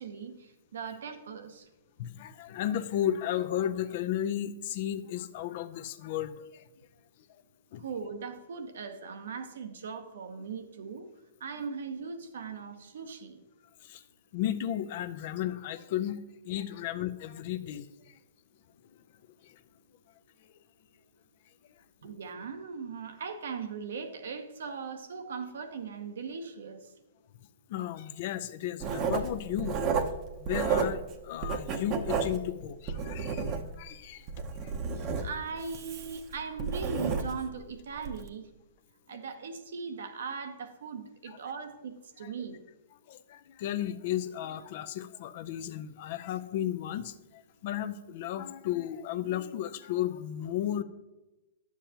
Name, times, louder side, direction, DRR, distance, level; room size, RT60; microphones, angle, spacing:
voice 1, 0.0-1.7 7.8-11.1 11.4-13.4 22.0-26.9 35.2-38.5 39.1-42.6, right 5 dB, 75° right, 7 dB, 0.9 m, -39 dB
voice 2, 2.0-6.6 7.7-7.8 11.6-11.7 13.8-14.0 14.3-17.9 19.4-19.6 27.7-29.8 30.4-35.3 39.1-39.2 41.3-41.4 42.2-42.3 43.1-50.8, left 11 dB, 55° left, 12 dB, 0.5 m, -34 dB
Writing, 28.8-31.1 31.4-33.9 34.3-37.5 38.0-38.2, right 5 dB, 35° right, 0.7 m, -31 dB
10.0 x 7.1 x 2.9 m, 1.0 s
hypercardioid pair, 125°, 0 cm